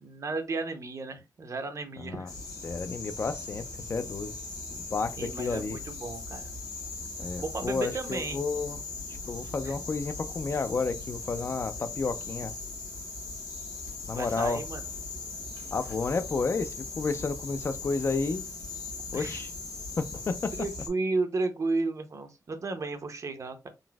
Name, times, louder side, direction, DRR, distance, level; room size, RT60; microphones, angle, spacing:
voice 1, 0.0-2.3 5.2-6.5 7.4-8.4 9.4-9.7 14.1-14.8 19.1-19.4 20.6-23.7, right 3 dB, 50° right, 0.6 m, -33 dB
voice 2, 2.0-2.3 2.6-3.6 3.9-4.3 4.7-5.8 7.2-8.8 9.3-12.5 14.1-14.6 15.7-18.4 19.1-19.5 20.0-20.5, left 4 dB, 40° left, 0.3 m, -31 dB
sound 1, 2.3-20.9, left 3 dB, 70° left, 1.1 m, -39 dB
3.9 x 2.6 x 2.2 m
wide cardioid pair, 125°, 7 cm